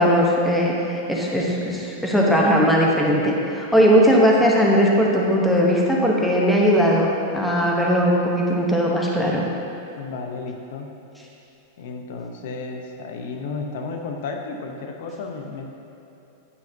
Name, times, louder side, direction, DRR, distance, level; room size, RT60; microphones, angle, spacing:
voice 1, 0.0-7.1 7.3-9.4, equal, ahead, -3 dB, 0.7 m, -19 dB
voice 2, 10.0-11.0 11.8-15.7, left 4 dB, 65° left, 3 dB, 0.7 m, -33 dB
9.6 x 5.8 x 2.6 m, 2.9 s
supercardioid pair, 150°, 0 cm